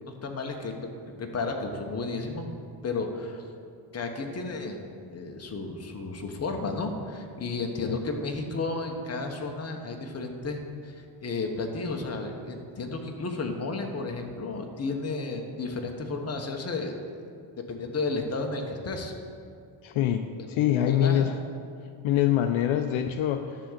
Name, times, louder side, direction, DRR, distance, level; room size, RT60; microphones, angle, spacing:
voice 1, 0.0-0.9 1.2-2.5 2.8-3.4 3.9-4.8 5.1-10.9 11.2-16.9 17.7-19.1 20.4-20.5 20.9-21.3, left 3 dB, 30° left, 3 dB, 1.1 m, -32 dB
voice 2, 19.8-21.4 22.0-23.6, left 11 dB, 70° left, 7 dB, 0.6 m, -25 dB
11.0 x 3.8 x 7.3 m, 2.3 s
cardioid pair, 110°, 50 cm